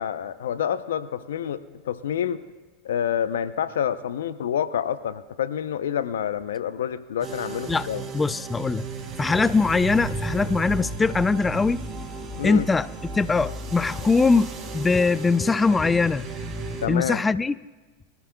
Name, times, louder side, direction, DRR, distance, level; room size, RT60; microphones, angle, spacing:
voice 1, 0.0-2.4 2.8-8.0 9.3-9.5 12.4-12.7 16.8-17.2, left 9 dB, 80° left, 13 dB, 0.7 m, -28 dB
sound 1, 7.2-16.9, right 3 dB, 30° right, 3.2 m, -34 dB
voice 2, 8.1-8.9 9.2-11.8 12.4-12.9 13.1-16.3 16.9-17.5, left 4 dB, 15° left, 18 dB, 0.4 m, -22 dB
24.0 x 14.0 x 2.3 m, 1.2 s
hypercardioid pair, 95°, 0 cm